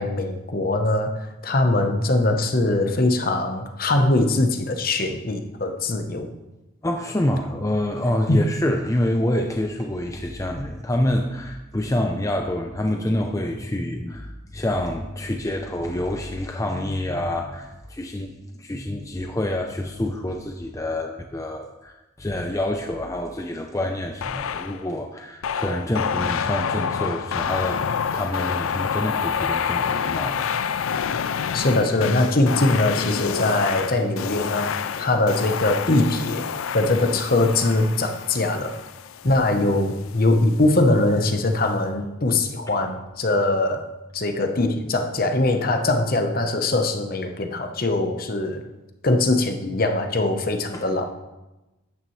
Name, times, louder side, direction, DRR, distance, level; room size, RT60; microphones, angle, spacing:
voice 1, 0.0-6.3 8.3-8.5 31.5-36.5 36.7-38.7 39.2-43.8 44.1-48.6 49.0-51.0, left 2 dB, 45° left, 6 dB, 0.9 m, -22 dB
voice 2, 6.8-27.8 28.1-30.5 39.3-39.4 50.7-50.8, left 1 dB, 15° left, 3 dB, 0.5 m, -27 dB
sound 1, 24.2-24.8 25.4-40.1, left 7 dB, 85° left, 0.4 m, -28 dB
12.5 x 9.2 x 3.2 m, 1.0 s
head